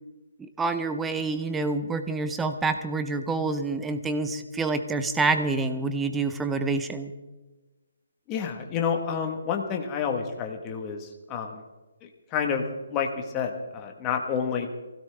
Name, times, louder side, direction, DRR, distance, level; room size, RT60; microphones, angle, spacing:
voice 1, 0.4-7.1, right 3 dB, 5° right, 9 dB, 0.6 m, -27 dB
voice 2, 8.3-11.6 12.3-12.6 12.9-13.1 13.3-14.7, left 7 dB, 15° left, 2 dB, 1.3 m, -29 dB
23.0 x 16.5 x 3.4 m, 1.2 s
hypercardioid pair, 175°, 0 cm